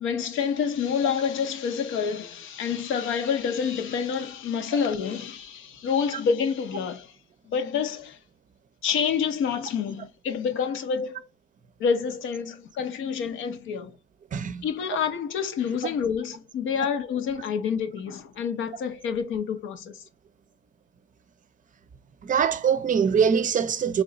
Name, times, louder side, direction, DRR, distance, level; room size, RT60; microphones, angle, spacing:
voice 1, 0.0-7.1 7.5-8.2 8.8-11.2 11.8-13.9 14.6-20.0, left 6 dB, 80° left, 0.7 m, -28 dB
voice 2, 14.3-14.6 22.2-24.0, right 7 dB, 40° right, 0.5 m, -23 dB
3.1 x 3.0 x 3.8 m
cardioid pair, 90°, 20 cm